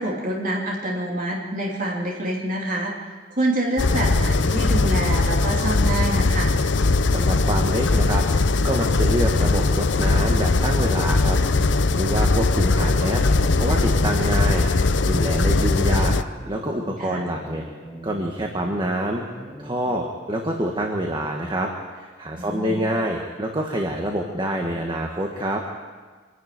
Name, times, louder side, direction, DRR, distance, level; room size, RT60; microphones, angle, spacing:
voice 1, 0.0-6.5 17.0-17.2 22.4-22.8, right 1 dB, 45° right, -3 dB, 3.0 m, -27 dB
sound 1, 3.8-16.2, left 3 dB, 70° left, 0.7 m, -20 dB
voice 2, 7.0-8.2 8.6-11.4 12.0-13.2 13.6-16.1 16.4-17.6 18.0-19.2 19.6-25.6, right 1 dB, 25° right, 1 dB, 1.7 m, -26 dB
sound 2, 11.3-14.8 15.3-18.8 19.3-20.0, right 1 dB, 10° left, 6.3 m, -41 dB
25.5 x 11.0 x 9.4 m, 1.4 s
head